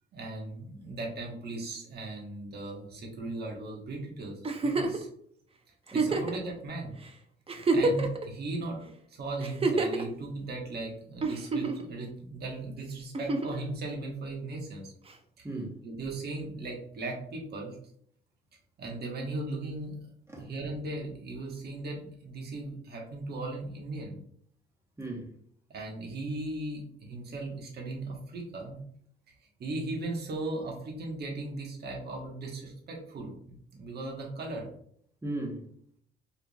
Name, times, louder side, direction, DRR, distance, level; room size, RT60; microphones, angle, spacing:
voice 1, 0.1-5.1 5.9-7.0 7.7-14.9 15.4-15.5 15.8-17.8 18.8-20.0 20.4-24.2 25.7-28.8 29.3-34.7, right 2 dB, 55° right, 1.3 m, -37 dB
Giggle, 4.4-5.0 5.9-6.4 7.0-7.1 7.5-8.2 9.4-10.0 11.2-11.9 13.1-13.6 15.1-15.2, right 3 dB, 30° right, 0.6 m, -27 dB
voice 2, 5.9-6.3 7.7-7.9 15.4-15.8 20.3-20.5 25.0-25.3 35.2-35.7, right 2 dB, 15° right, 1.1 m, -37 dB
4.5 x 3.4 x 2.4 m
cardioid pair, 90°, 20 cm